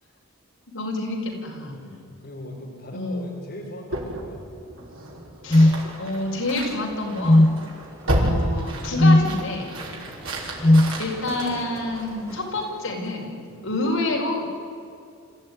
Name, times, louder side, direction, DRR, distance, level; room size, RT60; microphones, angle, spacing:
voice 1, 0.7-1.8 2.9-3.3 5.4-7.5 8.1-9.7 11.0-13.3 13.6-14.4, left 2 dB, 65° left, 0 dB, 5.3 m, -28 dB
voice 2, 1.7-4.5 7.6-7.8 9.9-10.1 13.5-13.7, left 1 dB, 45° left, -3 dB, 4.8 m, -40 dB
sound 1, 3.9-12.3, right 1 dB, 65° right, 5.7 m, -31 dB
sound 2, 5.5-5.8 7.2-7.6 9.0-9.3 10.6-10.9, left 1 dB, 25° left, 0.5 m, -14 dB
sound 3, 5.6-13.3, equal, 15° right, 4.7 m, -46 dB
27.0 x 15.5 x 9.9 m, 2.5 s
head